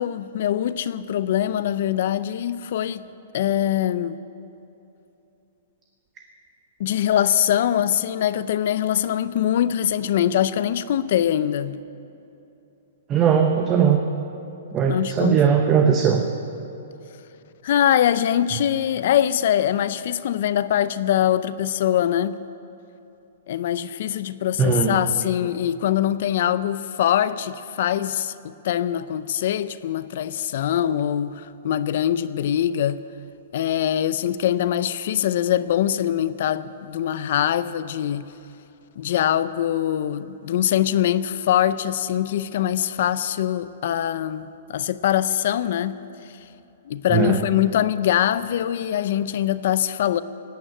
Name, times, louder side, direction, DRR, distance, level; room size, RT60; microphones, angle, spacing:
voice 1, 0.0-3.0 3.3-4.2 6.8-11.8 14.9-15.4 17.6-22.4 23.5-33.0 33.5-38.3 39.0-46.0 46.3-46.4 46.9-50.2, left 11 dB, 55° left, 0.5 m, -23 dB
voice 2, 13.1-14.0 14.7-16.2 24.6-24.9 47.1-47.4, right 7 dB, 20° right, 0.8 m, -19 dB
17.5 x 9.2 x 8.8 m
hypercardioid pair, 165°, 0 cm